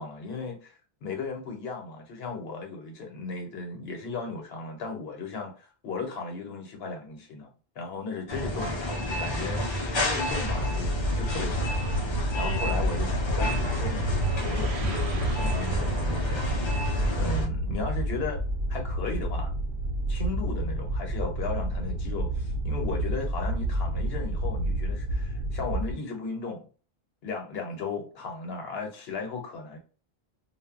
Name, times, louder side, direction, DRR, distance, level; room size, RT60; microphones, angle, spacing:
voice 1, 0.0-7.5 7.8-11.7 11.9-16.4 17.2-18.4 18.7-19.5 20.1-26.7 27.2-29.8, left 4 dB, 75° left, 1.0 m, -36 dB
sound 1, 8.3-17.5, left 1 dB, 40° left, 0.5 m, -30 dB
sound 2, 10.3-25.9, right 1 dB, 90° right, 0.9 m, -30 dB
sound 3, 14.0-18.9, right 3 dB, 50° right, 0.4 m, -40 dB
2.2 x 2.0 x 3.5 m
omnidirectional pair, 1.0 m